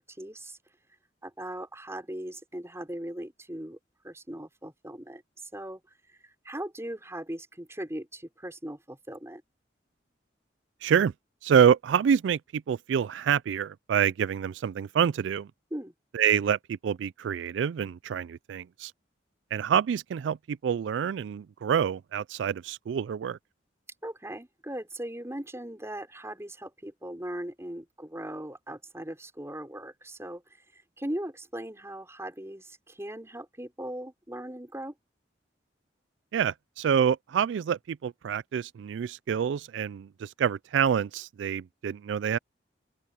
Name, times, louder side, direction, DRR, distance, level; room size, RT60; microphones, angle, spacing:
voice 1, 0.2-0.6 1.2-3.8 4.0-5.8 6.2-9.4 15.7-15.9 24.0-30.4 31.0-34.9, right 1 dB, 15° right, 5.8 m, -39 dB
voice 2, 10.8-11.1 11.4-15.5 16.1-18.9 19.5-23.4 36.3-42.4, right 8 dB, 85° right, 0.3 m, -27 dB
open air
head